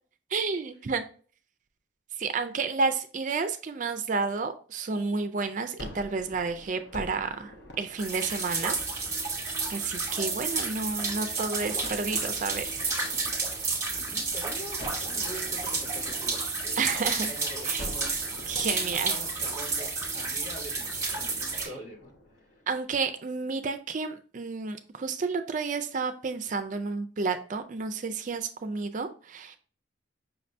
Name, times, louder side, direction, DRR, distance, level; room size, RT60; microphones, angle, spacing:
voice 1, 0.3-1.0 2.2-8.7 9.7-12.8 16.8-17.3 17.6-17.9 18.5-19.1 21.5-21.7 22.7-29.6, right 4 dB, 40° right, 9 dB, 0.4 m, -31 dB
Gunshot gunfire, 5.8-10.9 11.8-14.2 14.8-17.3 17.8-23.0, equal, 60° left, 0.9 m, -48 dB
sound 1, 8.0-21.7, right 4 dB, 15° right, 1.1 m, -31 dB
voice 2, 13.9-16.8 17.1-22.6, equal, 45° left, -1 dB, 1.5 m, -45 dB
5.8 x 2.7 x 3.2 m, 0.41 s
head